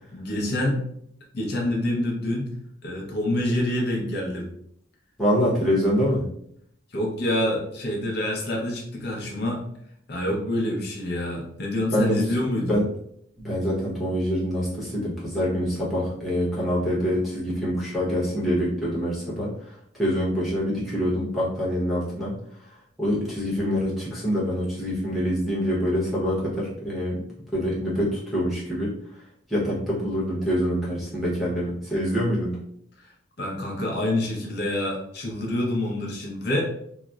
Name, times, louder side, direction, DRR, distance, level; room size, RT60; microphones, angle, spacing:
voice 1, 0.1-0.8 1.3-2.5 2.8-4.5 6.9-9.6 10.1-12.8 33.0-33.1 33.4-36.6, left 1 dB, 50° left, -1 dB, 0.6 m, -27 dB
voice 2, 5.2-6.2 11.9-12.3 12.7-12.9 13.4-22.4 22.7-27.2 27.5-32.6, equal, ahead, -6 dB, 0.8 m, -25 dB
3.9 x 2.0 x 2.3 m, 0.70 s
head